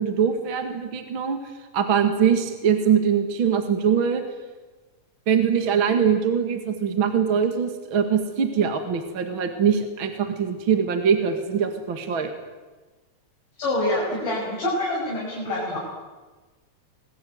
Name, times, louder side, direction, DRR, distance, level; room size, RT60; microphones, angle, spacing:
voice 1, 0.0-1.4 1.7-4.2 5.3-12.3, right 7 dB, 40° right, 6 dB, 2.2 m, -22 dB
voice 2, 13.6-15.8, left 1 dB, 65° left, -6 dB, 8.1 m, -26 dB
28.0 x 21.5 x 9.4 m, 1.3 s
omnidirectional pair, 4.0 m